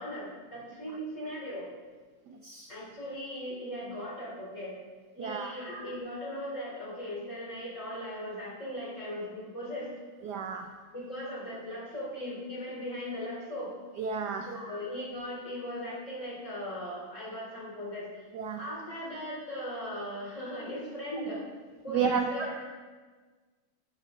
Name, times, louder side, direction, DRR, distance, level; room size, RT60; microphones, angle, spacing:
voice 1, 0.0-1.7 2.7-4.8 5.2-9.9 10.6-13.7 14.5-18.3 18.6-21.4 21.8-22.6, equal, 35° left, -6 dB, 4.3 m, -38 dB
voice 2, 5.2-5.5 10.2-10.7 14.0-14.5 18.3-18.6 21.9-22.3, right 6 dB, 70° right, 6 dB, 1.0 m, -31 dB
11.0 x 9.4 x 3.9 m, 1.4 s
omnidirectional pair, 2.2 m